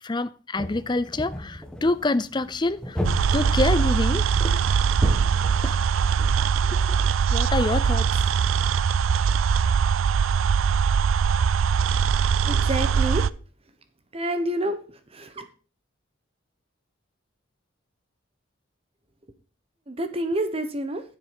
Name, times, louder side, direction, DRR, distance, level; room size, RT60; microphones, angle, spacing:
voice 1, 0.0-3.0 3.3-4.7 5.6-5.8 6.2-6.3 6.6-7.0 7.3-8.2, left 2 dB, 20° left, 0.5 m, -27 dB
sound 1, 0.6-6.2, left 1 dB, 5° left, 1.6 m, -34 dB
sound 2, 3.0-13.3, right 6 dB, 80° right, 0.4 m, -22 dB
voice 2, 12.4-13.2 14.1-14.8 15.1-15.4 19.9-21.0, right 1 dB, 30° right, 1.1 m, -28 dB
10.5 x 7.8 x 5.3 m
head